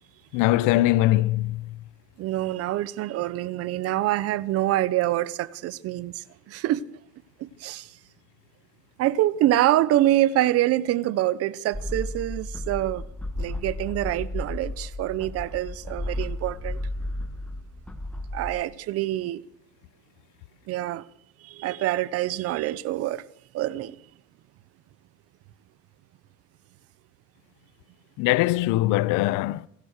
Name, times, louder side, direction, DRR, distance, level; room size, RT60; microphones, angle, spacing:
voice 1, 0.3-1.7 28.2-29.7, left 16 dB, 70° left, 0.8 m, -22 dB
voice 2, 2.2-6.8 7.4-7.9 9.0-13.0 13.4-16.8 18.3-19.4 20.7-21.0 21.4-23.2 23.5-24.0, right 14 dB, 45° right, 0.8 m, -25 dB
sound 1, 11.7-18.5, left 1 dB, 5° left, 1.3 m, -33 dB
27.5 x 17.0 x 6.6 m
cardioid pair, 165°, 32 cm